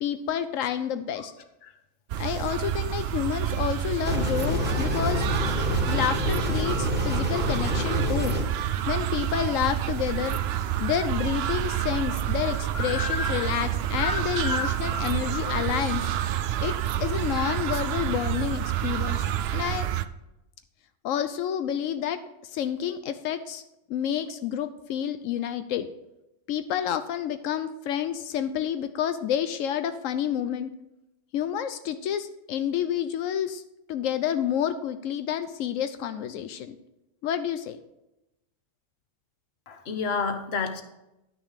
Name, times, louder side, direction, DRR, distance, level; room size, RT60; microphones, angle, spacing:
voice 1, 0.0-1.3 2.2-5.2 5.8-8.3 8.9-10.4 10.8-16.1 16.6-19.3 19.5-19.9 21.0-22.2 22.5-23.6 23.9-25.9 26.5-30.7 31.3-33.6 33.9-36.8 37.2-37.8, left 9 dB, 85° left, 10 dB, 1.0 m, -29 dB
sound 1, 2.1-20.0, right 11 dB, 65° right, 0.7 m, -28 dB
sound 2, 4.0-8.4, left 3 dB, 10° right, 1.6 m, -28 dB
voice 2, 12.7-13.5 14.0-15.7 39.7-40.8, left 5 dB, 55° left, 7 dB, 1.2 m, -31 dB
10.5 x 6.4 x 5.0 m, 0.90 s
omnidirectional pair, 1.3 m